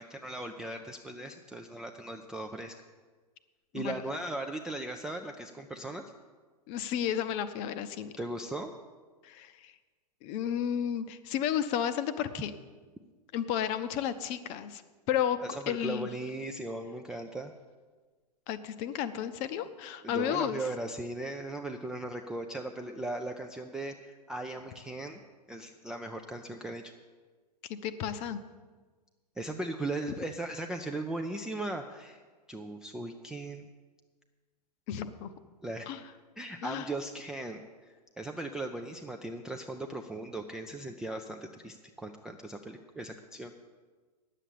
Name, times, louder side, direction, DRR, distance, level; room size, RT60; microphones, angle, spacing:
voice 1, 0.0-2.7 3.7-6.1 8.2-8.7 15.4-17.5 20.0-25.2 25.5-26.9 29.4-32.2 32.5-33.7 35.6-35.9 36.4-43.5, right 2 dB, 5° right, 3 dB, 0.3 m, -38 dB
voice 2, 6.7-8.1 9.2-9.7 10.2-12.5 13.3-14.8 15.1-15.4 15.7-16.1 18.5-20.6 27.7-28.4 34.9-35.3 35.9-36.0 36.6-36.8, left 9 dB, 30° left, 12 dB, 0.7 m, -32 dB
9.9 x 7.6 x 8.5 m, 1.4 s
figure-of-eight pair, 105°, 21 cm